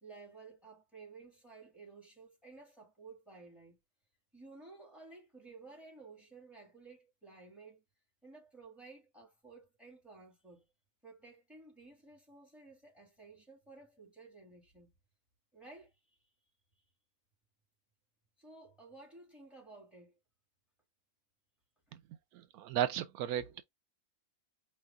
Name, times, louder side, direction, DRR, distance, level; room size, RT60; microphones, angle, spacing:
voice 1, 0.0-3.8 4.3-7.8 8.2-10.6 11.0-14.9 15.5-16.3 18.4-20.2 21.9-22.0 23.4-23.5, right 3 dB, ahead, 2.8 m, -55 dB
voice 2, 22.3-23.6, right 11 dB, 85° right, 1.1 m, -35 dB
4.6 x 3.2 x 3.6 m
omnidirectional pair, 1.6 m